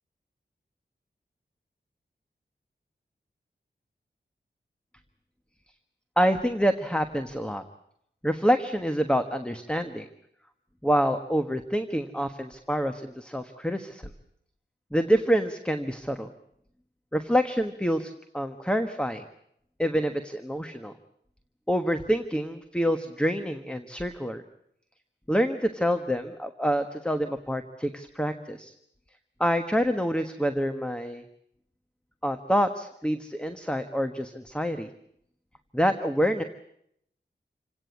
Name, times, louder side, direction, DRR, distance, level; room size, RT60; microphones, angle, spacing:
voice 1, 6.2-7.6 8.2-10.1 10.8-14.1 14.9-16.3 17.1-19.2 19.8-20.9 21.7-24.4 25.3-28.7 29.4-31.2 32.2-34.9 35.7-36.4, equal, 5° left, 8 dB, 1.4 m, -27 dB
27.5 x 17.5 x 8.5 m, 0.73 s
wide cardioid pair, 95°, 18 cm